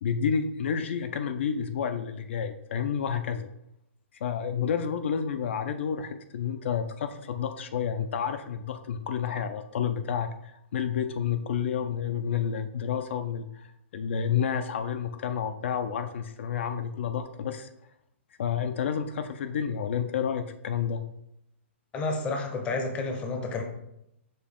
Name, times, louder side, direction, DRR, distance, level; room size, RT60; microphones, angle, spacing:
voice 1, 0.0-3.5 4.2-17.7 18.4-21.0, left 7 dB, 65° left, 8 dB, 0.4 m, -30 dB
voice 2, 21.9-23.6, left 3 dB, 15° left, 3 dB, 0.6 m, -30 dB
6.3 x 2.4 x 3.5 m, 0.81 s
hypercardioid pair, 155°, 7 cm